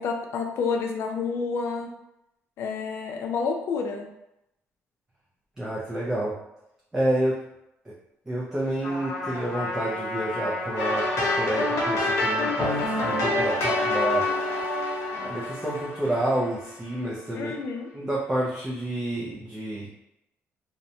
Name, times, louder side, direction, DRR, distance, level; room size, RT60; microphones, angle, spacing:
voice 1, 0.0-1.9 2.6-4.1 17.3-17.9, left 5 dB, 55° left, 3 dB, 0.4 m, -29 dB
voice 2, 5.6-6.4 6.9-7.4 7.9-8.0 8.3-14.3 15.1-17.5 17.9-19.9, right 1 dB, 10° right, -6 dB, 0.3 m, -29 dB
Trumpet, 8.8-13.5, left 2 dB, 20° left, 0.7 m, -34 dB
sound 1, 10.8-16.7, left 2 dB, 75° left, 0.8 m, -27 dB
2.7 x 2.1 x 2.6 m, 0.85 s
cardioid pair, 175°, 5 cm